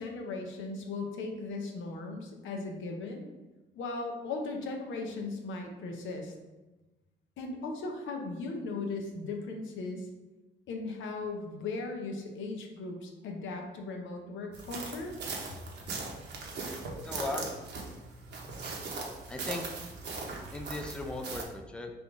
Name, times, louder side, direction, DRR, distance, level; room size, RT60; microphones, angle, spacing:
voice 1, 0.0-3.3 3.7-6.3 7.4-10.1 10.7-15.1, left 3 dB, 80° left, 3 dB, 0.7 m, -37 dB
sound 1, 14.5-21.4, right 3 dB, 60° right, 0.9 m, -39 dB
voice 2, 17.0-17.4 19.3-19.8 20.5-21.9, left 2 dB, 5° left, 3 dB, 0.4 m, -37 dB
3.5 x 2.6 x 4.5 m, 1.1 s
cardioid pair, 90°, 20 cm